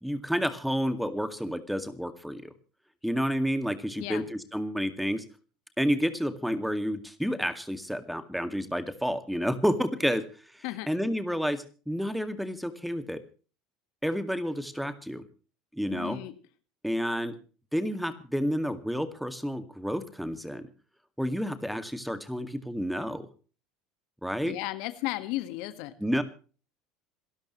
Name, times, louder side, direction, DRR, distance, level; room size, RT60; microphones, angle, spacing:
voice 1, 0.0-2.5 3.0-5.2 5.8-10.2 10.5-13.2 14.0-15.3 15.7-16.2 16.8-17.4 17.7-20.7 21.2-23.3 24.2-24.6 26.0-26.2, equal, ahead, 10 dB, 2.0 m, -30 dB
voice 2, 15.9-16.3 24.4-25.9, left 17 dB, 65° left, 11 dB, 1.6 m, -34 dB
27.0 x 13.0 x 3.1 m, 0.38 s
hypercardioid pair, 75°, 0 cm